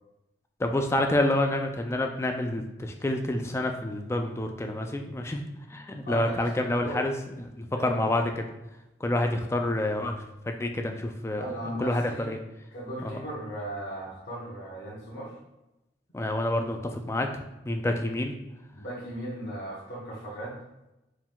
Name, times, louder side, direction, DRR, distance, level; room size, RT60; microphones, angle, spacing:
voice 1, 0.6-5.4 5.7-7.1 7.6-8.2 9.0-10.2 10.5-11.5 11.8-12.4 13.0-13.2 16.1-17.3 17.7-18.4, left 1 dB, 15° left, 4 dB, 0.3 m, -28 dB
voice 2, 6.0-7.1 7.7-8.0 11.4-12.4 12.7-15.4 18.7-20.6, right 1 dB, 60° left, -7 dB, 1.1 m, -37 dB
4.6 x 3.6 x 2.3 m, 0.96 s
head